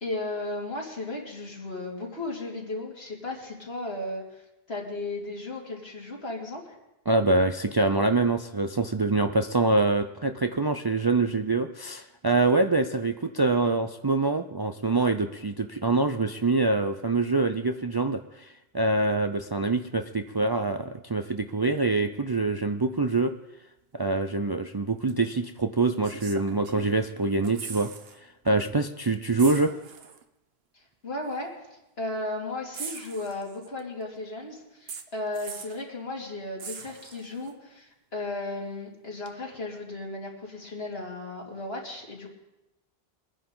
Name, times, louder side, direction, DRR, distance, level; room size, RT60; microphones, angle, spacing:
voice 1, 0.0-4.4 4.7-6.7 30.7-42.3, left 2 dB, 75° left, -2 dB, 2.9 m, -35 dB
voice 2, 7.1-18.5 18.7-23.3 23.9-27.9 28.4-29.7, right 3 dB, 30° right, 7 dB, 0.4 m, -25 dB
sound 1, 25.1-25.2 26.0-27.1 27.3-28.2 28.5-28.6 29.4-30.2 31.3-31.4 32.7-33.8 34.9-35.8 36.6-37.5 39.3-39.4, right 6 dB, 75° right, 1.1 m, -41 dB
23.5 x 9.9 x 3.9 m, 0.95 s
omnidirectional pair, 1.0 m